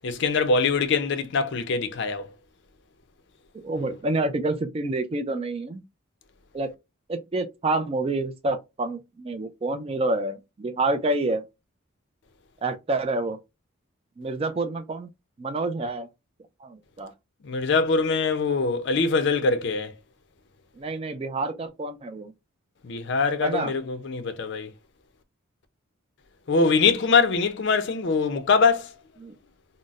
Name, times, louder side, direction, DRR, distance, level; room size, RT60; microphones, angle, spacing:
voice 1, 0.0-2.3 17.4-19.9 22.8-24.7 26.5-28.9, left 4 dB, 55° left, 0.5 m, -23 dB
voice 2, 3.6-5.8 6.5-6.7 7.1-11.4 12.6-13.4 14.2-15.1 15.4-16.1 16.6-17.1 20.8-22.3 23.4-23.7 29.2-29.3, right 2 dB, 25° right, 0.3 m, -28 dB
3.9 x 2.0 x 2.3 m
head